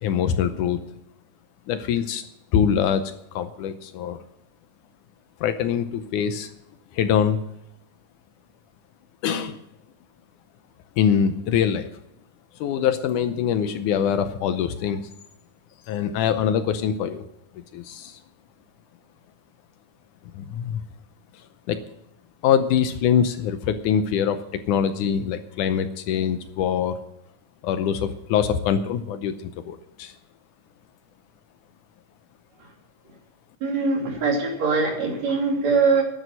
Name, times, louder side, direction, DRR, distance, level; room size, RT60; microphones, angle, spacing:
voice 1, 0.0-0.8 1.7-2.2 2.5-4.2 5.4-6.5 6.9-7.4 9.2-9.6 11.0-11.9 12.6-15.0 15.9-17.2 17.7-18.2 20.3-20.8 21.7-21.8 22.4-27.0 27.6-30.1, left 8 dB, 75° left, 10 dB, 2.1 m, -24 dB
voice 2, 33.6-36.0, right 4 dB, 55° right, 0 dB, 3.9 m, -22 dB
11.0 x 9.1 x 9.2 m, 0.83 s
omnidirectional pair, 3.8 m